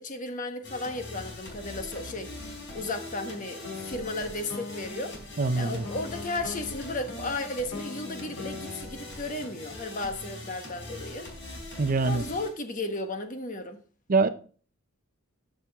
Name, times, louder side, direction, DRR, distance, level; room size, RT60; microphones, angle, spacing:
voice 1, 0.0-2.3 2.7-5.2 5.6-11.3 12.1-13.8, left 2 dB, 40° left, 1.3 m, -34 dB
sound 1, 0.6-12.5, left 2 dB, 55° left, 4.2 m, -42 dB
sound 2, 3.6-10.1, left 3 dB, 90° left, 2.1 m, -42 dB
voice 2, 5.4-5.8 11.8-12.2 14.1-14.3, right 3 dB, 40° right, 0.6 m, -24 dB
13.5 x 6.2 x 3.5 m
head